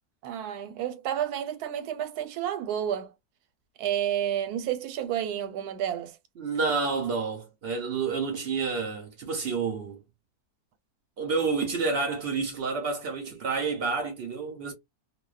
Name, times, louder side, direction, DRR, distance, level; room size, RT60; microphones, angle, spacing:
voice 1, 0.2-3.1 3.8-6.2, right 10 dB, 80° right, 1.1 m, -30 dB
voice 2, 6.4-10.0 11.2-14.7, right 4 dB, 60° right, 0.6 m, -29 dB
2.6 x 2.1 x 2.3 m
omnidirectional pair, 1.6 m